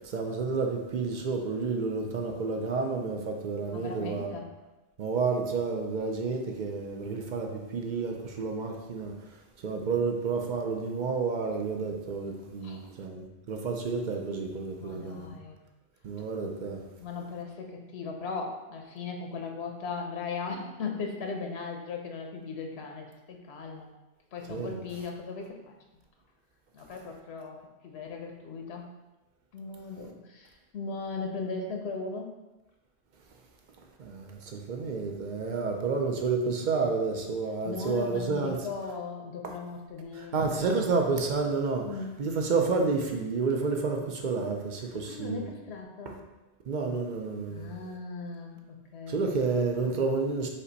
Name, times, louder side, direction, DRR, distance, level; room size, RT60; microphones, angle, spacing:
voice 1, 0.0-4.4 5.0-15.4 16.0-16.8 24.5-24.8 34.0-38.7 39.4-39.6 40.1-41.9 42.2-45.5 46.1-46.2 46.7-47.7 49.1-50.5, right 4 dB, 55° right, 2 dB, 0.6 m, -30 dB
voice 2, 3.7-4.5 12.6-12.8 14.8-15.6 17.0-23.9 24.3-25.6 26.7-27.6 27.8-28.9 29.5-32.3 37.6-40.4 41.8-42.1 45.1-46.2 47.5-49.2 49.8-50.0, left 4 dB, 80° left, 2 dB, 0.9 m, -38 dB
5.3 x 2.2 x 3.9 m, 1.0 s
omnidirectional pair, 1.1 m